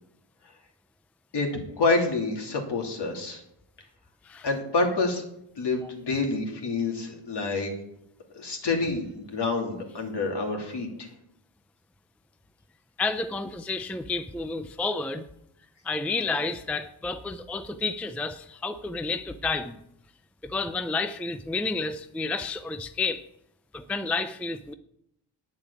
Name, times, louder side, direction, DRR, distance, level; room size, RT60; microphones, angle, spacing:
voice 1, 1.3-3.4 4.4-5.2 5.6-7.7 8.3-11.1, left 3 dB, 55° left, 2 dB, 2.9 m, -27 dB
voice 2, 13.0-15.3 15.8-19.8 20.4-23.2 23.7-24.7, left 3 dB, 5° left, 10 dB, 0.4 m, -30 dB
9.7 x 7.3 x 8.3 m, 0.78 s
cardioid pair, 115°, 50 cm